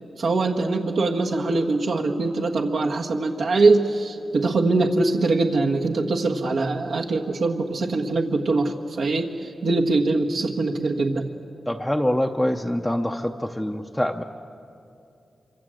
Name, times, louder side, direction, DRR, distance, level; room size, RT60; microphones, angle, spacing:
voice 1, 0.2-9.3 9.6-11.3, right 3 dB, 80° right, 0 dB, 1.5 m, -22 dB
voice 2, 11.7-14.2, left 1 dB, 5° left, 3 dB, 0.6 m, -25 dB
26.0 x 25.0 x 7.7 m, 2.7 s
wide cardioid pair, 165°, 0 cm